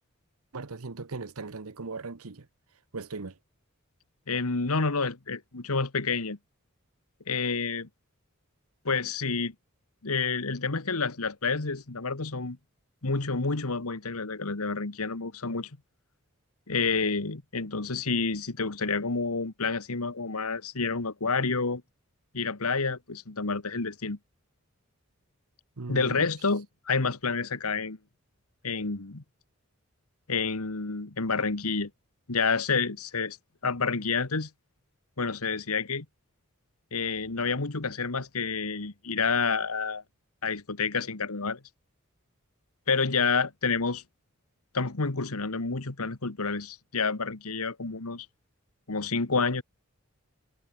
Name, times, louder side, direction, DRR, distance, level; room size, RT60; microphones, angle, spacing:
voice 1, 0.5-2.5 2.9-3.3 25.8-26.3, right 3 dB, 85° right, 1.0 m, -38 dB
voice 2, 4.3-6.4 7.3-7.9 8.9-9.5 10.0-12.6 13.0-15.7 16.7-21.8 22.3-24.2 25.9-28.0 28.6-29.2 30.3-31.9 32.3-33.4 33.6-34.5 35.2-36.1 36.9-40.0 40.4-41.6 42.9-44.0 44.7-48.3 48.9-49.6, left 4 dB, 90° left, 1.6 m, -29 dB
head